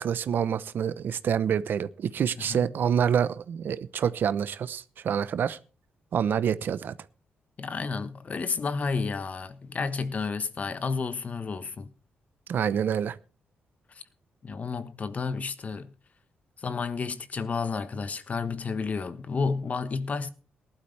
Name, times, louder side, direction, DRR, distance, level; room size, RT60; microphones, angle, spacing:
voice 1, 0.0-5.6 6.1-6.9 12.5-13.2, right 8 dB, 65° right, 0.9 m, -27 dB
voice 2, 7.6-11.9 13.9-14.0 14.4-15.9 16.6-20.3, left 4 dB, 40° left, 1.2 m, -31 dB
18.5 x 12.0 x 3.4 m
cardioid pair, 95°, 4 cm